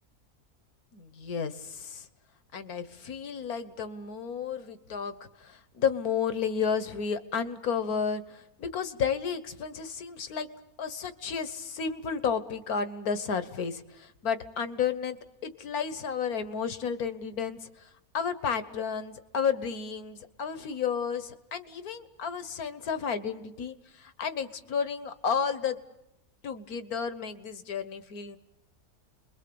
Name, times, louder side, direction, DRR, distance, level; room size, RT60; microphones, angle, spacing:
voice 1, 0.9-2.1 2.5-5.1 5.4-10.5 10.8-15.2 15.4-17.9 18.1-25.8 26.4-28.4, left 6 dB, 65° left, 11 dB, 1.6 m, -32 dB
29.5 x 22.0 x 7.0 m, 0.88 s
omnidirectional pair, 1.7 m